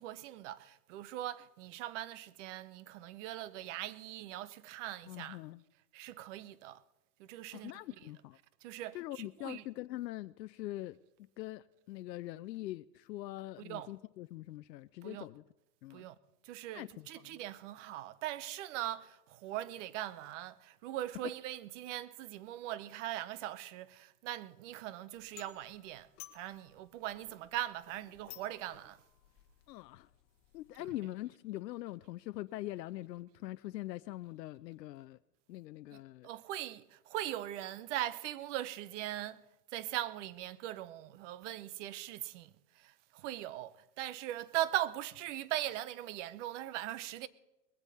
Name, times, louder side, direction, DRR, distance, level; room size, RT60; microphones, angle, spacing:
voice 1, 0.0-5.4 5.9-6.8 7.2-8.1 8.6-9.7 13.6-13.9 15.0-15.3 15.9-16.2 16.4-29.0 30.8-31.0 35.9-39.4 39.7-47.3, right 13 dB, 50° right, 0.8 m, -40 dB
voice 2, 5.1-5.6 7.5-8.4 8.9-11.0 11.4-15.4 15.8-16.0 16.7-17.4 29.7-30.1 30.5-35.2 35.5-36.3, left 16 dB, 80° left, 0.6 m, -43 dB
sound 1, 25.1-30.9, left 14 dB, 40° left, 1.6 m, -57 dB
21.0 x 8.1 x 5.6 m
hypercardioid pair, 130°, 49 cm